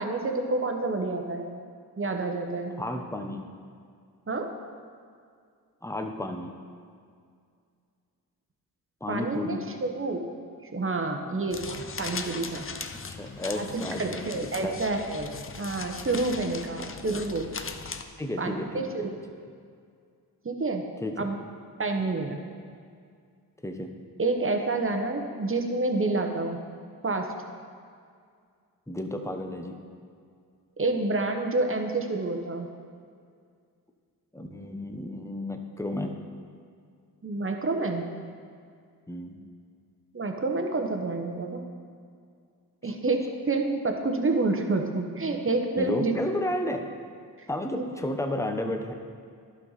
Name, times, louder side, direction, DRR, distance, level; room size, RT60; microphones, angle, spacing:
voice 1, 0.0-1.5 2.0-2.7 4.3-4.5 9.1-10.2 10.6-12.7 13.5-17.5 18.4-19.1 20.4-20.8 21.2-21.4 21.8-22.4 24.2-26.6 27.0-27.3 30.8-32.7 37.2-38.1 40.1-41.6 42.8-46.1 47.4-47.5 47.8-47.9, right 3 dB, 35° right, 4 dB, 1.1 m, -28 dB
voice 2, 2.8-3.4 5.8-6.5 9.0-9.6 13.1-14.7 16.4-16.5 16.8-16.9 18.2-19.4 21.0-21.3 22.0-22.1 23.6-23.9 28.9-29.8 34.3-36.2 39.1-39.4 42.8-42.9 45.8-46.9 47.5-48.9, left 1 dB, 5° left, 4 dB, 0.9 m, -32 dB
sound 1, 11.5-18.0, left 5 dB, 35° left, 0.6 m, -39 dB
11.5 x 5.7 x 4.1 m, 2.2 s
cardioid pair, 45°, 39 cm